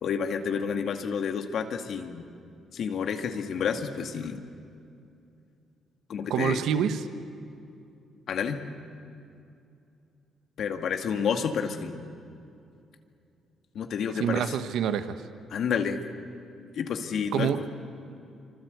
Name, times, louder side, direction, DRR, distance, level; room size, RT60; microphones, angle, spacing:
voice 1, 0.0-2.2 2.7-4.4 6.1-6.6 8.3-8.6 10.6-12.1 13.7-14.5 15.5-16.0 16.8-17.6, left 6 dB, 65° left, 5 dB, 2.1 m, -30 dB
voice 2, 6.3-7.0 14.2-15.2 17.3-17.7, right 8 dB, 80° right, 9 dB, 1.4 m, -26 dB
27.0 x 25.0 x 8.2 m, 2.5 s
cardioid pair, 90°, 0 cm